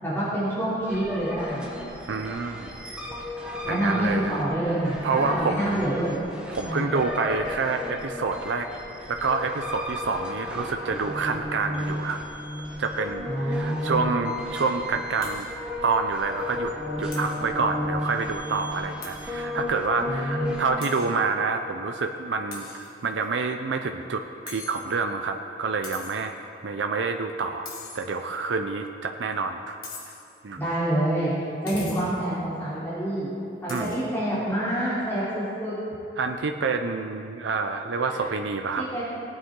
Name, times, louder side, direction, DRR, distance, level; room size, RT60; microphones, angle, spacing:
voice 1, 0.0-1.6 3.6-6.2 6.6-6.9 13.3-14.2 20.1-20.6 30.6-31.3 31.6-33.3 33.6-35.7 38.0-38.3 38.8-39.0, right 1 dB, 15° left, -11 dB, 3.1 m, -27 dB
sound 1, 0.9-20.7, left 1 dB, 5° right, 1.2 m, -34 dB
voice 2, 2.1-2.8 3.7-4.4 5.0-5.8 6.5-8.7 9.1-12.2 12.8-15.5 15.8-16.7 17.0-29.8 30.4-30.6 33.7-34.0 36.2-38.9, right 4 dB, 80° right, 5 dB, 0.5 m, -28 dB
sound 2, 15.2-15.6 15.9-16.0 16.4-16.5 17.1-17.5 19.0-19.4 19.8-19.9 20.8-21.2 22.5-23.2 24.5-25.2 25.8-26.4 27.7-28.4 29.8-30.4 31.7-32.2 33.7-34.1, left 4 dB, 50° left, 2.0 m, -42 dB
18.0 x 8.9 x 3.8 m, 2.9 s
head